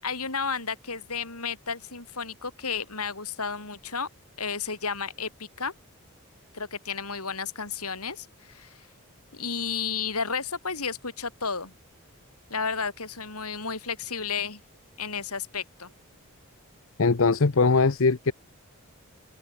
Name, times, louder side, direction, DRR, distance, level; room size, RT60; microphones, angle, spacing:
voice 1, 0.0-4.1 4.4-5.7 6.5-8.9 9.3-11.7 12.5-14.6 15.0-15.9, left 5 dB, 85° left, 7.2 m, -32 dB
voice 2, 17.0-18.3, left 4 dB, 65° left, 0.8 m, -21 dB
open air
head